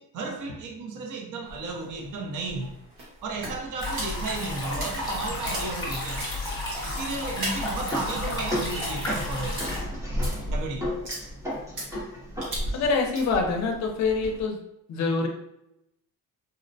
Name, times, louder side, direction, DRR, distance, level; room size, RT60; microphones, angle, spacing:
voice 1, 0.0-2.7 3.2-6.3 6.8-9.7 10.5-10.9, right 3 dB, 55° right, 1 dB, 0.6 m, -34 dB
sound 1, 1.4-14.5, equal, 90° right, 1.4 m, -37 dB
sound 2, 3.8-9.8, left 1 dB, 10° left, 1.0 m, -32 dB
sound 3, 7.1-12.9, equal, 10° right, 0.6 m, -35 dB
voice 2, 12.7-14.6 14.9-15.3, left 4 dB, 45° left, 2 dB, 0.5 m, -25 dB
4.0 x 2.0 x 2.6 m, 0.84 s
cardioid pair, 180°, 37 cm